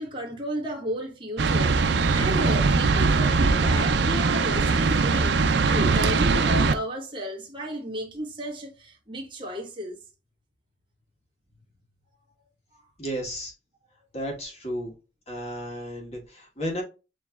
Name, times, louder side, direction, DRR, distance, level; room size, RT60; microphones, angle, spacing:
voice 1, 0.0-10.0 12.7-12.8, equal, 30° right, 1.3 m, -33 dB
sound 1, 1.4-6.7, right 4 dB, 80° right, 0.5 m, -21 dB
voice 2, 13.0-13.5 14.1-14.9 15.3-16.8, equal, 35° left, 1.5 m, -33 dB
6.8 x 3.1 x 2.4 m
head